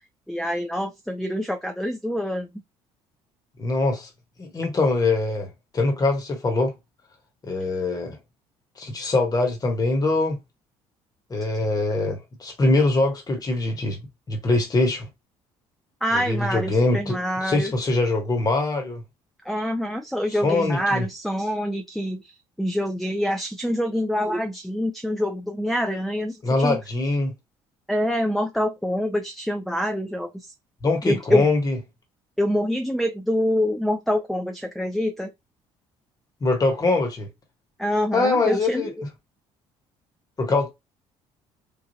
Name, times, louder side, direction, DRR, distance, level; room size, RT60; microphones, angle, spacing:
voice 1, 0.3-2.5 16.0-17.7 19.5-26.8 27.9-30.5 31.1-31.5 32.4-35.3 37.8-38.9, equal, ahead, 0.4 m, -26 dB
voice 2, 3.6-4.1 4.4-5.5 5.7-6.7 7.5-8.2 8.8-10.4 11.3-14.0 14.3-15.1 16.1-19.0 20.4-21.1 26.4-27.3 30.8-31.8 36.4-37.3 38.1-38.9 40.4-40.7, left 2 dB, 30° left, 1.1 m, -23 dB
3.2 x 2.2 x 2.7 m
supercardioid pair, 75°, 13 cm